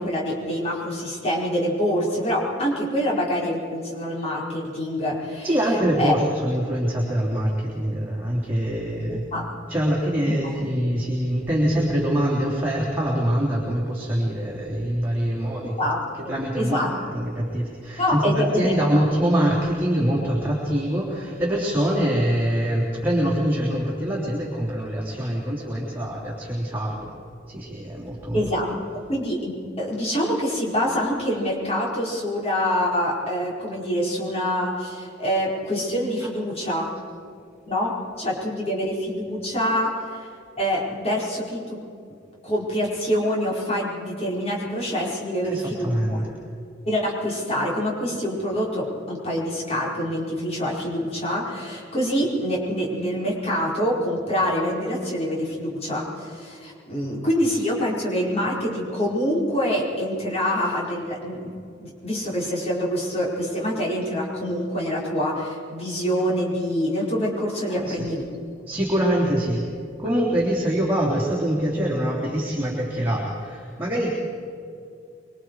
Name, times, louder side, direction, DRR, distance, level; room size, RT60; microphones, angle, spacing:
voice 1, 0.0-5.5 6.0-6.1 9.1-9.5 15.6-16.9 18.0-18.7 28.3-36.9 37.7-37.9 38.2-40.3 40.6-41.8 42.4-46.0 46.9-68.2, equal, 35° left, -4 dB, 4.9 m, -26 dB
voice 2, 5.4-9.2 9.7-15.8 16.0-27.2 27.5-28.8 36.2-36.3 45.4-46.3 57.4-57.5 67.7-68.1 68.7-69.6 70.0-74.1, equal, 10° right, -5 dB, 3.3 m, -24 dB
25.5 x 23.5 x 4.8 m, 2.4 s
head